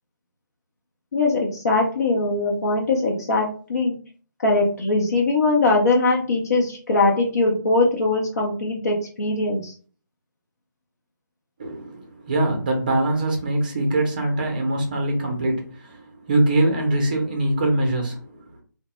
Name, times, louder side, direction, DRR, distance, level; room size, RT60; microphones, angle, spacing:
voice 1, 1.1-3.9 4.4-9.7, left 2 dB, 50° left, 0.7 m, -21 dB
voice 2, 11.6-18.6, right 1 dB, 25° right, 0.6 m, -23 dB
2.8 x 2.1 x 3.0 m
figure-of-eight pair, 170°, 11 cm